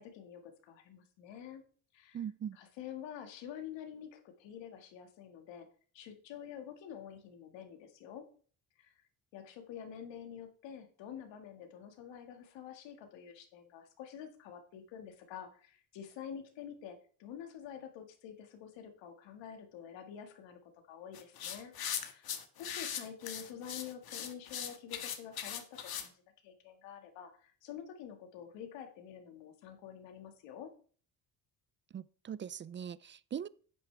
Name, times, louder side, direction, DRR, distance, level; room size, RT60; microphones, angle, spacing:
voice 1, 0.0-1.6 1.9-2.2 2.5-5.7 5.9-8.3 8.8-9.0 9.3-20.6 20.9-21.7 22.0-22.3 22.6-30.7, left 8 dB, 80° left, 1.9 m, -48 dB
voice 2, 2.1-2.6 31.9-33.5, right 8 dB, 30° right, 0.4 m, -41 dB
sound 1, 21.1-26.1, left 8 dB, 55° left, 1.5 m, -40 dB
11.0 x 8.0 x 3.3 m
supercardioid pair, 75°, 44 cm